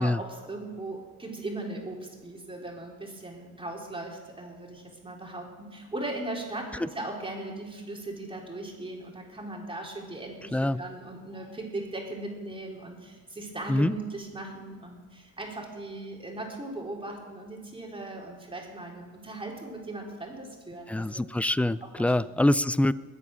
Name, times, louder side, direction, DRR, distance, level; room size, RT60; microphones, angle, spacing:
voice 1, 0.0-21.4 21.8-22.4, right 2 dB, 15° right, 0 dB, 3.8 m, -38 dB
voice 2, 20.9-22.9, left 1 dB, 5° left, 18 dB, 0.4 m, -24 dB
21.0 x 8.5 x 6.4 m, 1.4 s
cardioid pair, 90°, 30 cm